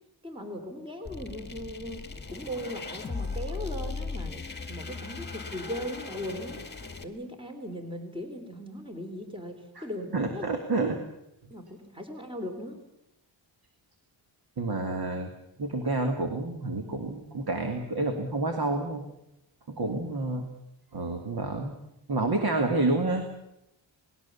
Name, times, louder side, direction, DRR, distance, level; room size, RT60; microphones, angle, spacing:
voice 1, 0.2-6.6 7.0-10.4 11.5-12.8 19.8-20.0, equal, 10° right, 5 dB, 3.3 m, -38 dB
sound 1, 1.0-7.0, left 4 dB, 20° left, 2.0 m, -38 dB
voice 2, 10.1-11.0 14.6-15.3 15.6-19.0 19.7-20.5 20.9-21.8 22.1-23.3, right 2 dB, 50° right, 5 dB, 2.3 m, -29 dB
28.0 x 20.0 x 7.1 m, 0.86 s
wide cardioid pair, 150°, 47 cm